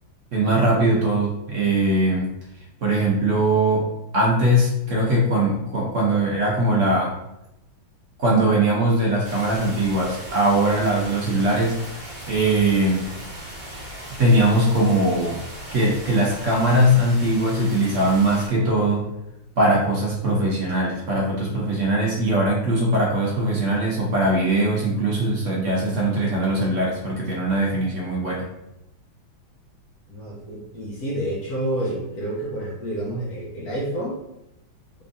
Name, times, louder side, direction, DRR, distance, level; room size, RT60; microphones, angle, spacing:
voice 1, 0.3-2.3 2.8-3.9 4.1-7.1 8.2-11.8 12.3-13.0 14.2-15.4 15.7-19.0 19.6-28.5, right 1 dB, 60° right, -4 dB, 0.8 m, -21 dB
sound 1, 9.2-18.5, equal, 35° right, 1.0 m, -38 dB
voice 2, 30.1-34.2, right 1 dB, 60° left, -4 dB, 1.1 m, -29 dB
3.6 x 3.4 x 2.6 m, 0.88 s
omnidirectional pair, 2.2 m